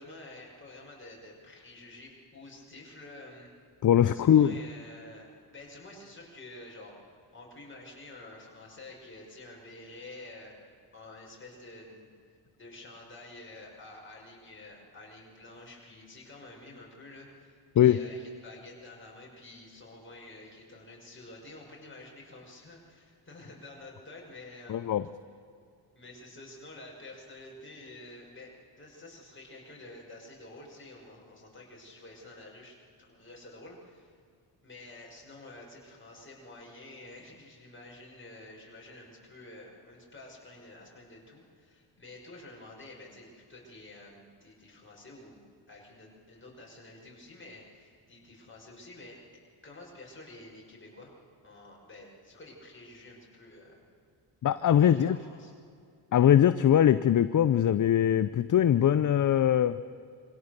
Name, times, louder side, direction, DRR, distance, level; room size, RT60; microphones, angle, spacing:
voice 1, 0.0-3.5 4.1-5.3 5.5-6.9 7.3-10.5 10.9-12.1 12.6-24.9 25.9-28.5 28.8-34.1 34.6-45.4 45.7-49.2 49.6-51.2 51.4-53.8 54.8-55.5, left 2 dB, 25° left, -2 dB, 6.2 m, -49 dB
voice 2, 3.8-4.6 17.8-18.1 24.7-25.0 54.4-55.2 56.1-59.8, left 10 dB, 40° left, 13 dB, 0.7 m, -22 dB
25.0 x 17.0 x 6.8 m, 2.3 s
cardioid pair, 80°, 48 cm